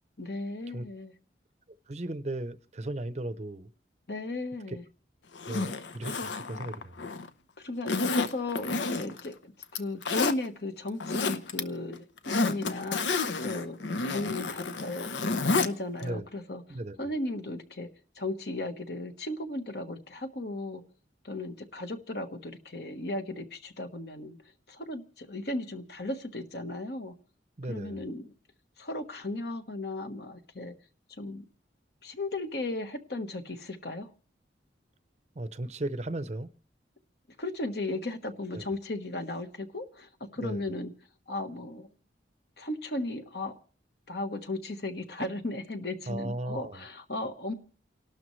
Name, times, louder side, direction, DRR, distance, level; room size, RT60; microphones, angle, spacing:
voice 1, 0.2-1.1 4.1-4.8 7.6-13.0 13.4-13.8 14.1-15.2 15.5-17.9 18.1-20.8 21.2-24.4 24.7-27.1 27.7-28.3 28.8-30.7 31.2-31.4 32.0-34.1 37.4-40.9 41.3-41.9 42.6-43.5 44.1-47.5, left 2 dB, 60° left, 1.3 m, -36 dB
voice 2, 1.9-3.7 4.7-4.8 5.5-6.9 16.0-16.3 16.7-17.0 27.6-28.0 35.4-36.5 38.5-38.6 40.4-40.6 46.1-46.8, right 1 dB, 35° right, 0.7 m, -36 dB
Zipper (clothing), 5.3-7.3 7.9-9.3 9.6-10.4 10.9-11.6 11.9-15.7 16.0-16.1, left 3 dB, 80° left, 0.9 m, -30 dB
29.5 x 12.0 x 3.2 m
head